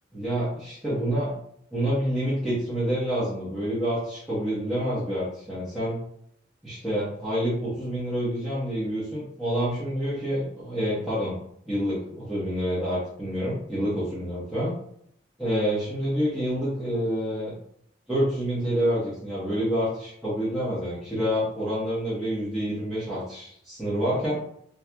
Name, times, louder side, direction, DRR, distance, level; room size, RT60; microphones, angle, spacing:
voice 1, 0.1-1.3 1.7-6.0 6.6-11.4 11.7-14.7 15.4-17.6 18.1-24.4, equal, ahead, -12 dB, 1.0 m, -27 dB
4.3 x 2.4 x 2.2 m, 0.68 s
head